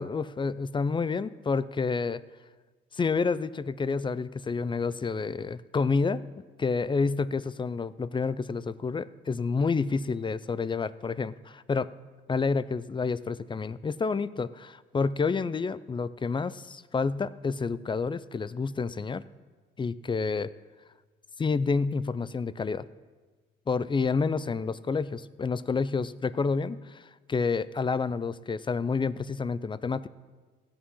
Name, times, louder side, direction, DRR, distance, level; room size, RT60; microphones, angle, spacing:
voice 1, 0.0-2.2 2.9-6.2 6.6-11.9 12.3-19.2 19.8-20.5 21.4-22.8 23.7-30.1, left 4 dB, 25° left, 17 dB, 0.5 m, -29 dB
15.5 x 8.7 x 5.6 m, 1.3 s
cardioid pair, 90°, 20 cm